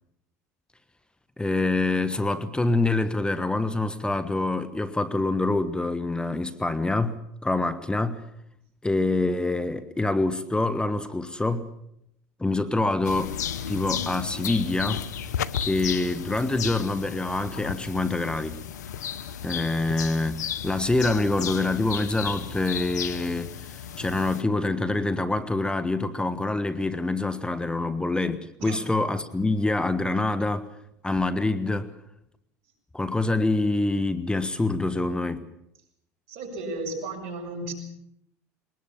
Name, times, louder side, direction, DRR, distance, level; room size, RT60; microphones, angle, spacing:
voice 1, 1.4-8.2 8.8-11.7 12.4-13.4 13.7-15.1 15.6-18.6 19.4-30.7 31.0-31.9 32.9-35.5, left 2 dB, 10° left, 1.2 m, -26 dB
sound 1, 13.0-24.4, left 9 dB, 90° left, 1.0 m, -34 dB
voice 2, 36.3-37.7, right 2 dB, 65° right, 7.1 m, -34 dB
22.5 x 19.5 x 7.2 m
hypercardioid pair, 85°, 9 cm